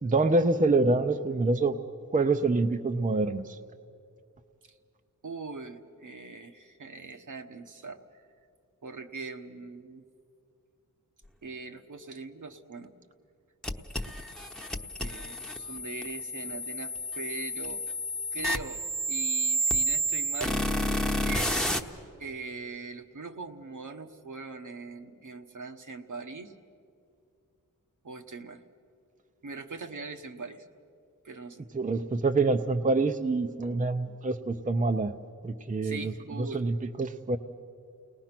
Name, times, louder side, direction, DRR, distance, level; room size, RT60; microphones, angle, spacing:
voice 1, 0.0-1.8 2.1-3.6 31.7-35.1 35.4-37.4, right 3 dB, 25° right, 7 dB, 0.7 m, -26 dB
voice 2, 5.2-8.0 8.8-10.0 11.4-12.9 15.0-17.8 18.3-18.8 19.1-20.6 21.2-21.5 22.2-26.5 28.0-28.6 29.4-30.7 31.2-31.6 35.8-36.6, right 4 dB, 65° right, 5 dB, 1.3 m, -41 dB
sound 1, 13.6-21.8, right 1 dB, ahead, 1.0 m, -30 dB
29.5 x 19.5 x 6.0 m, 2.4 s
wide cardioid pair, 85°, 33 cm